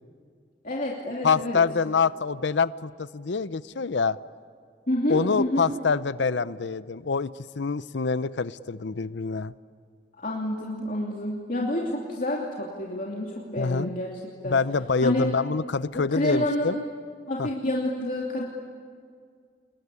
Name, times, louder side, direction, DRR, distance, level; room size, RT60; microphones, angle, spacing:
voice 1, 0.6-1.6 4.9-5.7 10.2-14.1 14.4-14.6 15.0-15.3 15.9-16.8 17.3-18.4, left 1 dB, 50° left, -3 dB, 2.8 m, -28 dB
voice 2, 1.2-4.2 5.1-7.3 7.6-9.5 13.6-13.9 14.4-16.8 17.4-17.5, left 5 dB, 80° left, 16 dB, 0.6 m, -26 dB
28.5 x 21.5 x 9.8 m, 2.1 s
head